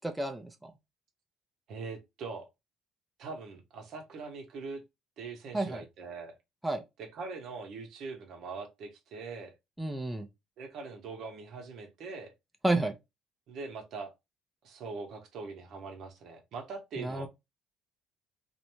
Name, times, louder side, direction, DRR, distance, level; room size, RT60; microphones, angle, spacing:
voice 1, 0.0-0.5 5.5-5.8 6.6-6.8 9.8-10.3 12.6-12.9 17.0-17.3, right 2 dB, 5° right, 0.4 m, -30 dB
voice 2, 1.7-2.5 3.2-4.8 5.2-6.3 7.0-9.5 10.6-12.3 13.5-14.1 14.6-17.3, right 4 dB, 65° right, 0.8 m, -42 dB
2.5 x 2.1 x 2.9 m
cardioid pair, 125°, 0 cm